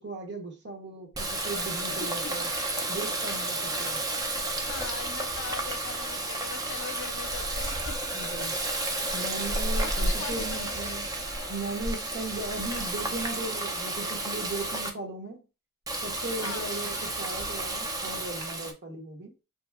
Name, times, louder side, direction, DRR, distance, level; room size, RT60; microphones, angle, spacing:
voice 1, 0.0-2.5 2.9-4.0 8.1-8.6 9.1-11.1 11.5-15.4 16.0-19.3, right 2 dB, 50° right, 0.8 m, -37 dB
Water tap faucet, 1.1-14.9 15.9-18.7, right 2 dB, 15° right, 0.3 m, -31 dB
voice 2, 3.5-3.8 4.7-8.1 9.7-11.0 16.4-16.7, left 6 dB, 60° left, 0.5 m, -41 dB
2.8 x 2.6 x 2.3 m
head